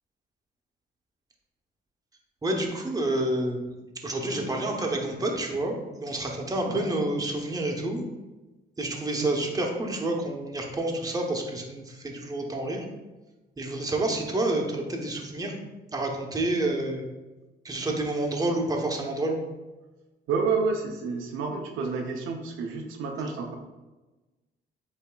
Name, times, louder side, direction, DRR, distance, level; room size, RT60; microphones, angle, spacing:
voice 1, 2.4-5.7 6.0-8.0 8.8-12.9 13.6-15.6 15.9-17.0 17.6-19.4, right 2 dB, 20° right, 1 dB, 0.9 m, -29 dB
voice 2, 20.3-23.5, right 4 dB, 85° right, 2 dB, 0.7 m, -29 dB
8.1 x 2.7 x 2.3 m, 1.1 s
cardioid pair, 90°, 20 cm